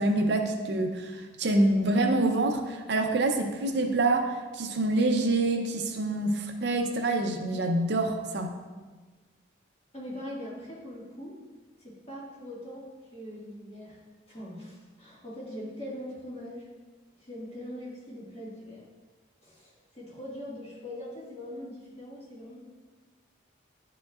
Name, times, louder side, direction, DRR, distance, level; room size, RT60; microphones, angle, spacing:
voice 1, 0.0-8.5, right 2 dB, 65° right, 5 dB, 0.6 m, -26 dB
voice 2, 9.9-11.3 11.8-14.0 14.3-16.7 17.2-18.8 19.4-22.6, left 1 dB, 30° left, -6 dB, 1.7 m, -42 dB
10.0 x 5.0 x 2.4 m, 1.3 s
head